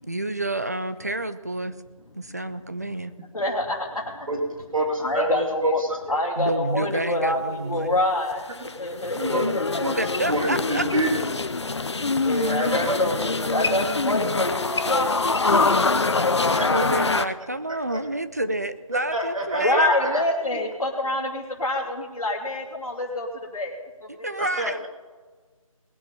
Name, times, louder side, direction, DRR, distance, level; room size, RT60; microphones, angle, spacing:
voice 1, 0.1-1.7 2.2-3.1 6.4-8.0 9.4-9.6 10.0-10.9 16.6-19.9 24.1-24.9, right 1 dB, 30° right, 11 dB, 0.5 m, -29 dB
voice 2, 3.3-4.3 5.0-5.8 6.1-9.6 12.0-15.9 19.6-23.3 23.5-23.8 24.2-24.3, left 1 dB, 70° left, -4 dB, 2.6 m, -26 dB
voice 3, 4.7-6.0 8.6-8.7 9.2-9.5 9.8-10.0 10.3-11.2 12.5-13.0 16.5-17.1 17.9-18.0 18.9-20.2 24.4-24.9, right 1 dB, 70° right, 3 dB, 2.3 m, -28 dB
sound 1, 8.3-17.3, left 3 dB, 50° left, 0.7 m, -24 dB
20.5 x 7.2 x 5.5 m, 1.4 s
figure-of-eight pair, 175°, 18 cm